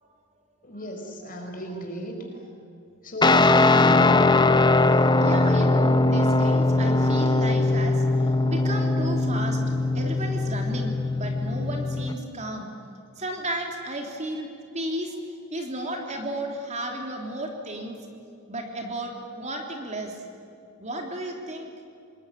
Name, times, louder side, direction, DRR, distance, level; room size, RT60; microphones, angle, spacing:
voice 1, 0.6-2.1 3.0-4.1, right 1 dB, 40° left, 3 dB, 5.1 m, -33 dB
voice 2, 1.3-1.8 5.1-9.6 9.9-12.7 13.2-15.2 15.5-18.0 18.5-20.2 20.8-21.7, right 1 dB, 30° right, 2 dB, 3.3 m, -33 dB
Guitar, 3.2-12.1, left 2 dB, 20° left, 0.9 m, -20 dB
27.0 x 21.0 x 9.2 m, 2.6 s
head